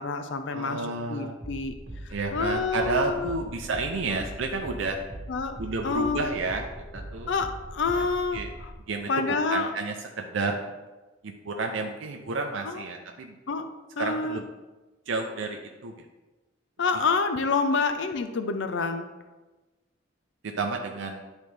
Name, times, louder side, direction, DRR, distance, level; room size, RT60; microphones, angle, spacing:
voice 1, 0.0-1.7 2.0-3.4 4.1-4.2 5.3-5.6 5.8-6.2 7.3-8.7 9.1-9.7 12.6-12.8 13.5-13.7 14.0-14.4 16.8-19.1, left 4 dB, 70° left, 8 dB, 0.5 m, -28 dB
voice 2, 0.5-1.3 2.1-5.0 5.6-6.7 7.1-7.3 8.3-8.5 8.9-9.1 9.5-10.6 11.2-13.3 14.0-14.4 15.1-15.9 20.4-21.2, right 3 dB, 80° right, 2 dB, 0.6 m, -30 dB
sound 1, 1.4-8.8, right 1 dB, 65° right, 1.4 m, -41 dB
10.5 x 4.1 x 3.3 m, 1.2 s
head